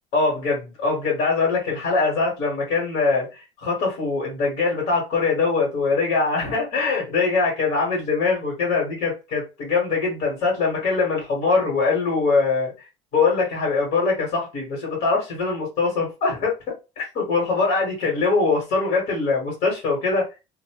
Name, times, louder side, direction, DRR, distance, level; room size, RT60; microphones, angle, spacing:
voice 1, 0.1-3.3 3.6-12.7 13.1-16.5 17.0-20.2, left 4 dB, 60° left, 1.4 m, -22 dB
2.7 x 2.1 x 2.8 m
cardioid pair, 150°, 13 cm